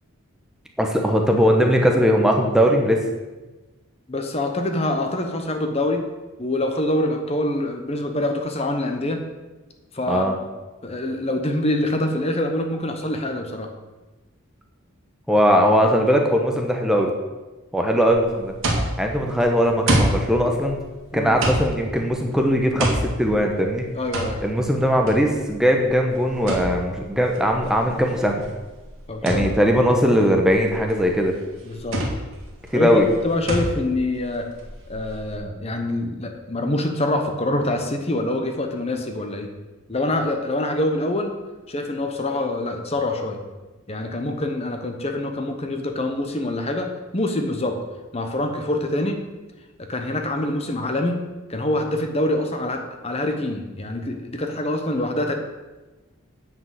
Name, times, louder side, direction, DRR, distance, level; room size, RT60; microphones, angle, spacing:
voice 1, 0.8-3.0 10.1-10.3 15.3-17.1 17.7-18.5 19.0-20.8 21.1-23.8 24.4-28.4 29.2-31.3 32.7-33.1, equal, 5° right, 2 dB, 0.9 m, -19 dB
voice 2, 4.1-6.0 6.4-9.2 9.9-10.4 10.8-13.7 21.1-21.3 23.9-24.4 29.1-29.5 31.6-32.0 32.7-34.5 34.9-39.5 39.9-41.3 41.7-43.4 43.9-47.8 48.1-49.2 49.8-51.2 51.5-55.3, left 1 dB, 30° left, 5 dB, 0.9 m, -25 dB
sound 1, 18.1-35.4, right 1 dB, 60° right, 2.1 m, -28 dB
9.3 x 5.1 x 8.0 m, 1.2 s
head